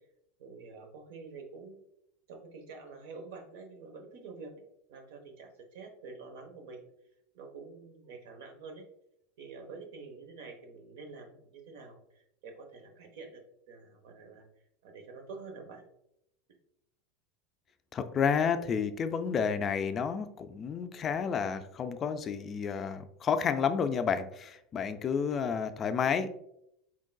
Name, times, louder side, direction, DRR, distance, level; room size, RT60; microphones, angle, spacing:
voice 1, 0.4-1.8 2.3-4.5 4.9-6.9 7.3-8.8 9.4-13.4 13.7-14.5 14.8-15.8, right 4 dB, 75° right, 4 dB, 0.9 m, -47 dB
voice 2, 17.9-26.3, left 6 dB, 30° left, 9 dB, 0.3 m, -30 dB
4.4 x 3.7 x 2.2 m, 0.77 s
supercardioid pair, 135°, 0 cm